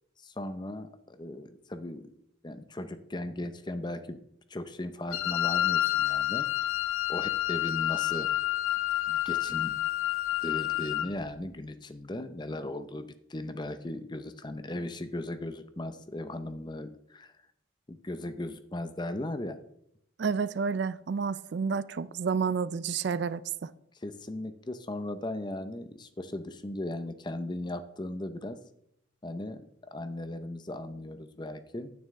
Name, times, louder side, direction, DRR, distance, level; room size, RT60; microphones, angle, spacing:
voice 1, 0.2-2.1 2.4-4.2 4.5-6.5 7.1-8.3 9.0-9.7 10.4-17.3 17.9-19.6 23.9-28.6 29.2-31.9, left 1 dB, 20° left, 0.6 m, -37 dB
Wind instrument woodwind instrument, 5.1-11.1, left 14 dB, 85° left, 0.5 m, -29 dB
voice 2, 20.2-23.7, right 5 dB, 55° right, 0.3 m, -30 dB
9.4 x 8.9 x 3.6 m
head